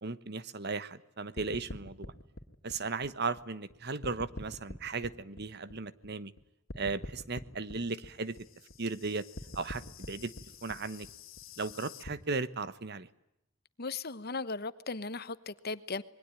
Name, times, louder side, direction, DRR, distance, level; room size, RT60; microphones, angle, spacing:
voice 1, 0.0-2.1 2.6-6.3 6.8-8.4 8.8-9.2 9.5-10.3 10.6-11.1 11.6-13.1, right 4 dB, 55° right, 1.2 m, -36 dB
sound 1, 1.4-3.7 4.0-6.4 6.7-12.1, left 2 dB, 85° left, 2.3 m, -45 dB
voice 2, 13.8-16.0, left 4 dB, 50° left, 1.1 m, -37 dB
27.0 x 22.0 x 9.1 m
head